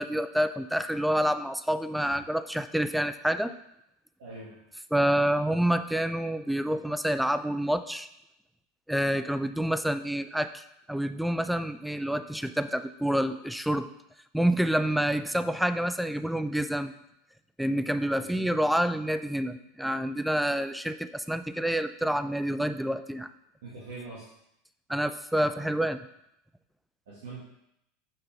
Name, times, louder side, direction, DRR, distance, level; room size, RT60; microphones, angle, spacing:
voice 1, 0.0-3.5 4.9-8.1 8.9-13.9 14.3-16.9 17.6-23.3 24.9-26.0, right 1 dB, ahead, 11 dB, 0.4 m, -28 dB
voice 2, 4.2-4.6 18.2-18.5 23.6-24.2 27.1-27.4, right 3 dB, 75° right, -8 dB, 2.0 m, -42 dB
7.6 x 5.4 x 3.4 m, 0.80 s
hypercardioid pair, 95°, 0 cm